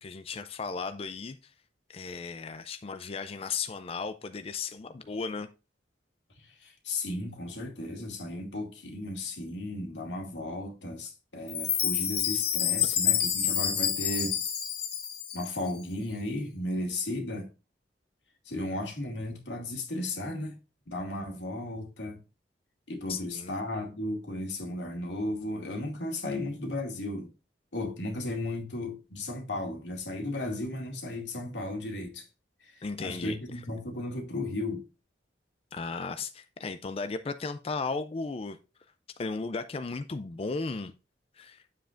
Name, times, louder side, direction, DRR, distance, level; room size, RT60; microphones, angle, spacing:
voice 1, 0.0-1.5 1.9-5.5 23.1-23.5 32.8-33.6 35.7-38.6 39.2-40.9 41.4-41.6, left 4 dB, 35° left, 0.4 m, -35 dB
voice 2, 6.4-14.4 15.3-17.5 18.4-20.6 20.9-22.2 22.9-27.3 27.7-32.3 32.6-34.8, left 1 dB, 90° left, 2.3 m, -35 dB
Chime, 11.5-15.7, left 9 dB, 60° left, 1.4 m, -28 dB
9.1 x 7.5 x 2.5 m
head